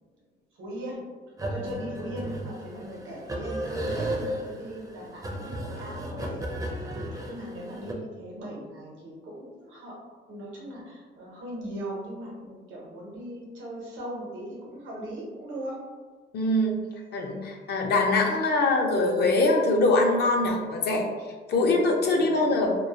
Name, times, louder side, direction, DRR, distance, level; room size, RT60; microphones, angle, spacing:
voice 1, 0.5-1.0 1.5-6.4 6.9-10.0 10.3-15.8 21.5-21.8 22.1-22.5, right 1 dB, 80° right, -4 dB, 0.8 m, -39 dB
sound 1, 1.4-7.9, right 1 dB, 20° right, 0.4 m, -34 dB
voice 2, 16.3-16.8 17.1-21.1 21.5-22.8, left 2 dB, 55° left, 1 dB, 0.5 m, -23 dB
2.2 x 2.1 x 2.8 m, 1.4 s
cardioid pair, 90°, 20 cm